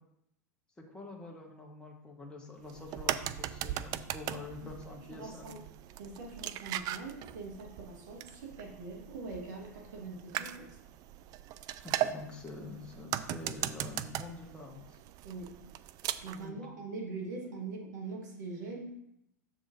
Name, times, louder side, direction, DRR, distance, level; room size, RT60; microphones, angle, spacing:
voice 1, 0.9-5.5 11.8-15.0 16.4-16.6, left 3 dB, 10° left, 0 dB, 1.0 m, -46 dB
sound 1, 2.6-16.5, right 12 dB, 40° right, 0.4 m, -39 dB
voice 2, 4.9-5.6 6.0-10.7 15.2-15.5 16.2-18.9, right 3 dB, 70° right, -1 dB, 1.9 m, -43 dB
7.1 x 4.9 x 3.9 m, 0.81 s
hypercardioid pair, 100°, 10 cm